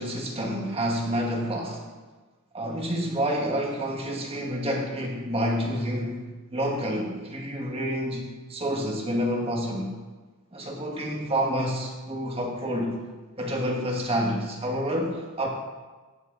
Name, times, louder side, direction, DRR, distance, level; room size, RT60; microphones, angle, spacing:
voice 1, 0.0-1.9 2.5-6.2 6.5-9.9 10.5-13.0 13.4-15.5, equal, 25° right, 0 dB, 1.7 m, -28 dB
16.0 x 10.5 x 4.0 m, 1.3 s
head